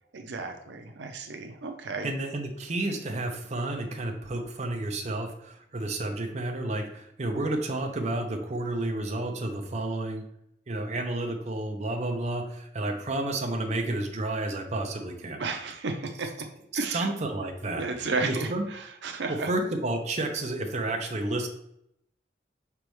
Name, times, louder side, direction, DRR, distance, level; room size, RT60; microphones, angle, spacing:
voice 1, 0.1-2.1 15.4-16.3 16.7-17.1 17.8-19.5, right 3 dB, 85° right, 5 dB, 0.6 m, -33 dB
voice 2, 2.0-10.2 10.7-15.4 16.9-18.6 19.3-21.5, right 2 dB, 40° right, 2 dB, 0.6 m, -31 dB
5.1 x 3.4 x 3.1 m, 0.75 s
head